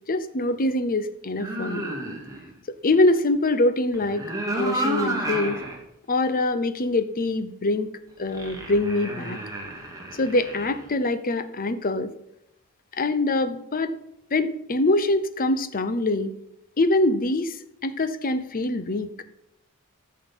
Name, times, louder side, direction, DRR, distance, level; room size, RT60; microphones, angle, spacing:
voice 1, 0.1-1.9 2.8-4.2 4.6-5.6 6.1-7.9 8.2-9.4 10.2-12.1 13.0-13.9 14.3-16.3 16.8-17.6 17.8-19.1, left 2 dB, 40° left, 12 dB, 0.8 m, -24 dB
sound 1, 1.4-2.5 3.9-5.8 6.3-6.4 8.3-10.8, right 1 dB, 15° right, 2.2 m, -31 dB
14.0 x 6.5 x 5.6 m, 0.81 s
head